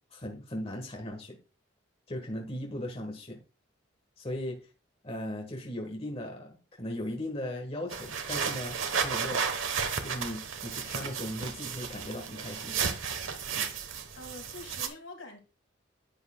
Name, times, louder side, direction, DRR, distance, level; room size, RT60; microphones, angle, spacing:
voice 1, 0.1-1.4 2.1-3.4 4.2-4.7 5.0-9.6 10.0-12.8, left 1 dB, 30° left, 1.3 m, -38 dB
sound 1, 7.9-14.9, right 6 dB, 85° right, 1.1 m, -33 dB
voice 2, 14.1-15.4, left 2 dB, 80° left, 2.2 m, -45 dB
10.5 x 8.1 x 2.2 m
head